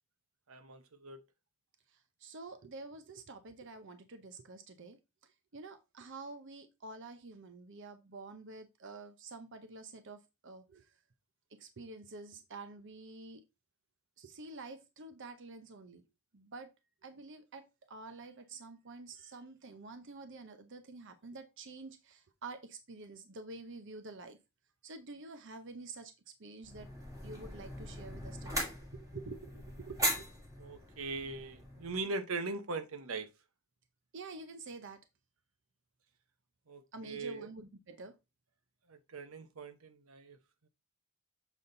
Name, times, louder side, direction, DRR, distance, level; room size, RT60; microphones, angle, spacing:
voice 1, 0.5-1.2 30.6-33.3 36.7-37.5 38.9-40.4, right 3 dB, 85° right, 1.0 m, -40 dB
voice 2, 2.2-5.0 5.5-10.9 11.5-13.4 14.2-16.1 16.3-16.7 17.0-24.4 24.8-26.1 26.4-26.9 27.2-28.6 28.9-30.3 34.1-35.0 36.9-38.2, right 3 dB, 60° right, 0.8 m, -48 dB
sound 1, 26.6-32.0, right 1 dB, 15° right, 2.3 m, -39 dB
7.2 x 4.2 x 3.9 m
head